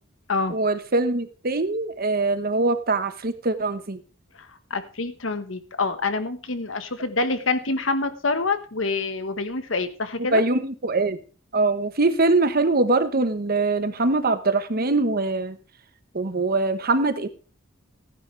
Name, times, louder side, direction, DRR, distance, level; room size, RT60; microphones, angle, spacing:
voice 1, 0.5-4.0 10.3-11.2 11.5-15.6 16.1-17.3, right 3 dB, 50° right, 10 dB, 1.1 m, -23 dB
voice 2, 4.7-10.4, left 3 dB, 75° left, 10 dB, 1.3 m, -26 dB
15.0 x 10.5 x 3.3 m, 0.36 s
head